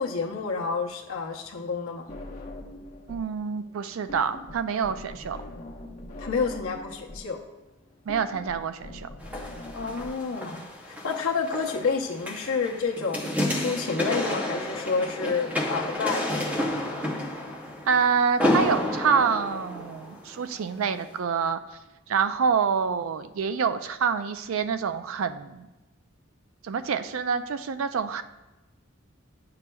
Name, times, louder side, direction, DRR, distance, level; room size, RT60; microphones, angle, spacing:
voice 1, 0.0-2.1 6.2-7.4 9.7-16.7, left 5 dB, 85° left, 0 dB, 0.9 m, -29 dB
sound 1, 2.1-3.3 3.6-10.1, left 1 dB, 40° left, 1.0 m, -42 dB
voice 2, 3.1-5.4 8.1-9.1 17.9-21.6 22.1-25.7 26.6-28.2, right 6 dB, 80° right, 11 dB, 0.4 m, -26 dB
sound 2, 9.2-20.5 21.0-21.1, left 1 dB, 5° right, 0.7 m, -30 dB
8.5 x 5.8 x 2.3 m, 1.1 s
head